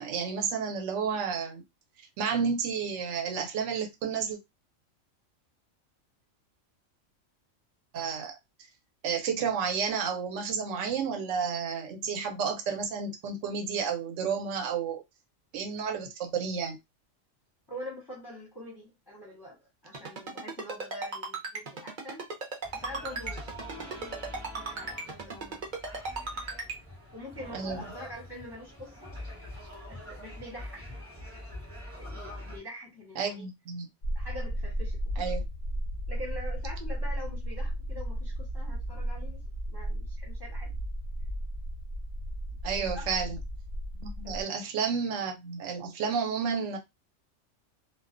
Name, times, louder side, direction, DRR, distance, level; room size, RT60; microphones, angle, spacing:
voice 1, 0.0-1.6 2.2-4.4 7.9-8.4 9.0-15.0 15.5-16.8 27.5-27.8 33.2-33.9 35.2-35.4 42.6-43.4 43.9-46.8, right 6 dB, 70° right, 0.9 m, -31 dB
voice 2, 17.7-22.3 22.7-25.6 27.1-29.1 29.9-30.9 31.9-33.5 34.1-35.3 36.1-39.4 39.7-40.7 42.8-43.1 44.2-44.4, equal, 25° left, 0.6 m, -44 dB
Ringtone, 19.9-26.8, right 4 dB, 45° right, 0.7 m, -36 dB
sound 1, 22.6-32.6, left 1 dB, 10° right, 1.0 m, -44 dB
sound 2, 34.0-44.4, equal, 70° left, 0.4 m, -34 dB
2.3 x 2.2 x 2.4 m
omnidirectional pair, 1.4 m